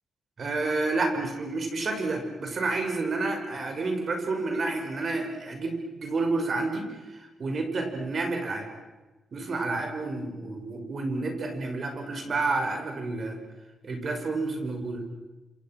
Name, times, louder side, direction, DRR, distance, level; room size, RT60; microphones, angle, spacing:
voice 1, 0.4-8.7 9.3-13.4 13.8-15.1, right 3 dB, 50° right, 4 dB, 5.8 m, -30 dB
28.0 x 27.0 x 6.2 m, 1.2 s
cardioid pair, 100°, 0 cm